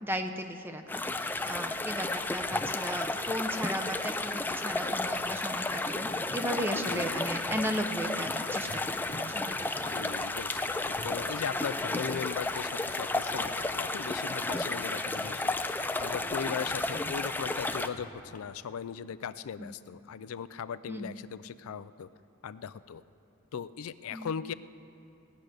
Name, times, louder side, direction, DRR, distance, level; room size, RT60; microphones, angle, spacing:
voice 1, 0.0-9.0 9.3-10.0 19.6-19.7 20.9-21.2 24.1-24.4, equal, 10° right, 6 dB, 0.7 m, -36 dB
sound 1, 0.9-17.9, left 2 dB, 10° left, 0.3 m, -33 dB
sound 2, 1.1-18.4, left 1 dB, 35° left, 1.0 m, -49 dB
voice 2, 6.9-7.2 8.5-8.6 9.9-22.1 22.4-23.0 23.5-24.5, left 7 dB, 80° left, 15 dB, 0.4 m, -38 dB
17.5 x 10.5 x 6.5 m, 2.8 s
head